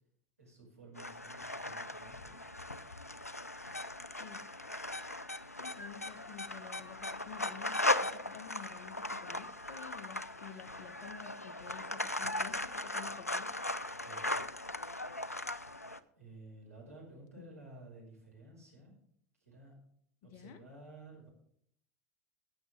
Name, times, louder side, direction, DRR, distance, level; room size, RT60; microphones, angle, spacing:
voice 1, 0.4-2.4 14.0-14.4 16.1-18.9 19.4-19.8 20.2-21.3, right 2 dB, 80° right, -2 dB, 5.6 m, -54 dB
sound 1, 1.0-16.0, left 2 dB, 90° left, 0.5 m, -38 dB
voice 2, 5.6-13.5 17.4-17.5 20.2-20.6, left 8 dB, 45° left, 10 dB, 1.5 m, -51 dB
15.5 x 9.1 x 3.6 m, 0.67 s
figure-of-eight pair, 80°, 8 cm